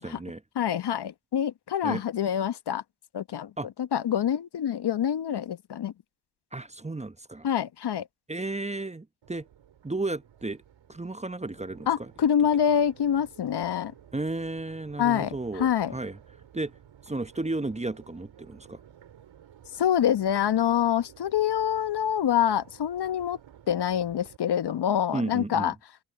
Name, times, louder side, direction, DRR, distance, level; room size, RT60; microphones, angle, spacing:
voice 1, 0.0-0.4 1.8-2.0 3.6-3.7 6.5-7.5 8.3-9.5 9.8-10.6 10.9-12.1 14.1-16.2 16.5-16.7 17.0-18.8 25.1-25.7, right 2 dB, 15° right, 1.1 m, -33 dB
voice 2, 0.6-2.8 3.1-3.5 3.9-5.9 7.4-8.1 11.9-13.9 15.0-15.9 19.8-23.4 23.7-25.7, left 9 dB, 55° left, 1.2 m, -26 dB
Crowd, 9.2-24.4, right 10 dB, 65° right, 4.3 m, -54 dB
hypercardioid pair, 40°, 49 cm